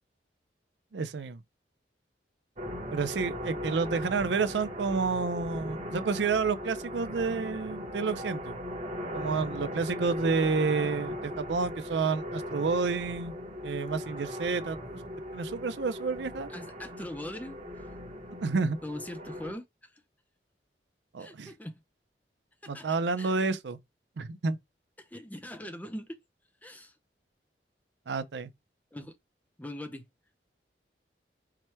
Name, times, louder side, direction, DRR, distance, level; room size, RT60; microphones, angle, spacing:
voice 1, 0.9-1.4 2.9-8.6 9.1-13.3 13.6-14.8 15.3-16.5 18.4-18.8 21.1-21.5 22.7-23.8 24.2-24.6 28.1-28.5, right 4 dB, 85° right, 0.5 m, -29 dB
sound 1, 2.6-19.5, equal, 40° right, 1.1 m, -38 dB
voice 2, 16.5-17.6 18.8-19.6 21.2-21.7 22.6-23.3 25.1-26.2 26.6-26.9 28.9-29.2 29.6-30.0, left 1 dB, 10° left, 0.5 m, -41 dB
4.7 x 2.2 x 4.3 m
head